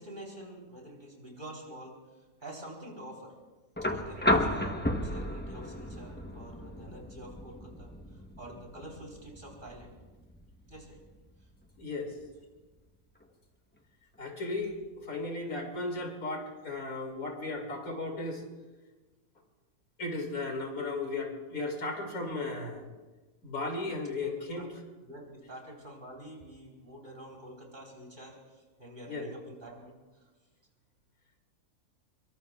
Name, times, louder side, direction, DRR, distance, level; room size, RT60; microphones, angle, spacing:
voice 1, 0.0-3.4 3.8-10.0 10.7-11.0 11.4-11.5 24.2-24.7 25.0-30.3, right 1 dB, 35° right, -1 dB, 4.0 m, -47 dB
sound 1, 3.8-11.8 13.2-13.3, left 1 dB, 10° left, 0.8 m, -34 dB
voice 2, 11.8-12.1 14.2-18.4 20.0-22.8 23.4-24.7 29.1-29.3, left 2 dB, 85° left, 2 dB, 3.0 m, -35 dB
25.5 x 22.5 x 2.4 m, 1.2 s
omnidirectional pair, 1.5 m